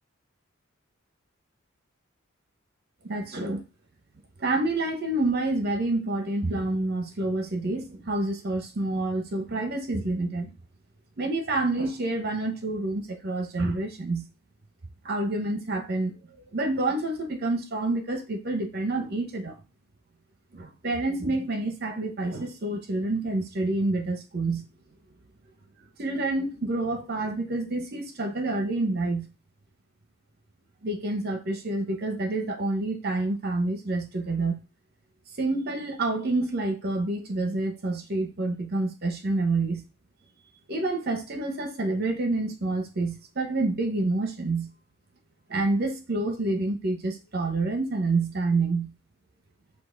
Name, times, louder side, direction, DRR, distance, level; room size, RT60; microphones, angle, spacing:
voice 1, 3.0-3.6 4.4-10.5 11.2-14.2 15.0-16.2 16.5-19.6 20.5-24.6 26.0-29.3 30.8-34.6 35.4-39.8 40.7-44.7 45.5-48.9, right 2 dB, 50° right, 0.9 m, -28 dB
5.5 x 2.4 x 3.8 m
head